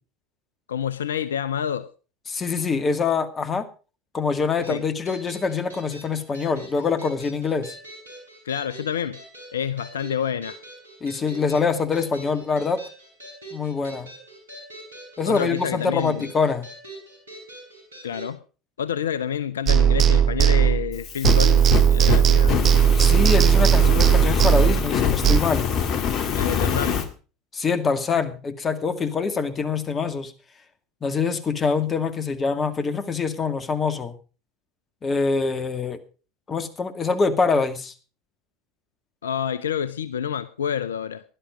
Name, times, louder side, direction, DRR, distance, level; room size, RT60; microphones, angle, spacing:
voice 1, 0.7-1.9 4.7-4.8 8.4-9.2 9.5-10.6 15.2-16.3 18.0-18.4 18.8-22.7 26.3-27.0 39.2-41.2, left 8 dB, 80° left, 0.7 m, -28 dB
voice 2, 2.3-3.7 4.1-7.8 11.0-12.8 13.5-14.1 15.2-16.7 23.0-25.7 27.5-30.3 31.0-34.1 35.0-36.0 36.5-37.9, left 5 dB, 30° left, 2.1 m, -24 dB
sound 1, 4.6-18.3, right 1 dB, 85° right, 6.6 m, -43 dB
sound 2, 19.7-21.0 21.2-25.4, right 9 dB, 40° right, 0.8 m, -17 dB
Fire, 20.9-27.1, left 7 dB, 45° left, 2.0 m, -25 dB
16.5 x 11.5 x 5.2 m
figure-of-eight pair, 75°, 0 cm